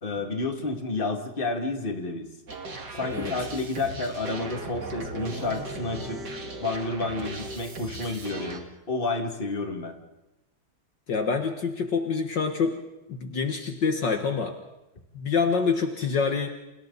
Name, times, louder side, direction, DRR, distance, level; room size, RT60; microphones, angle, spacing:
voice 1, 0.0-2.3 2.9-6.2 6.6-10.0, left 3 dB, 25° left, 4 dB, 2.5 m, -30 dB
sound 1, 2.5-8.6, right 2 dB, 55° right, 2.9 m, -37 dB
voice 2, 11.1-12.8 13.1-14.6 15.1-16.5, left 5 dB, 60° left, 5 dB, 2.1 m, -26 dB
30.0 x 28.5 x 4.1 m, 0.98 s
omnidirectional pair, 2.3 m